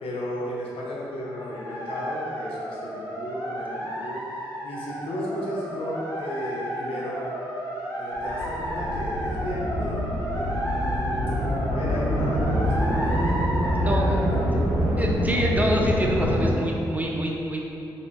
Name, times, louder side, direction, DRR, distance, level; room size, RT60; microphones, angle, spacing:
voice 1, 0.0-4.2 4.6-7.2 7.9-10.0 10.3-10.9 11.7-15.0, equal, 70° left, -5 dB, 0.7 m, -34 dB
sound 1, 1.2-14.4, right 1 dB, 30° left, 1.4 m, -33 dB
sound 2, 8.1-16.5, equal, 85° right, 0.5 m, -25 dB
voice 2, 13.8-14.2 15.0-17.6, equal, 15° right, -1 dB, 0.5 m, -26 dB
4.1 x 2.6 x 2.2 m, 2.7 s
hypercardioid pair, 40°, 10 cm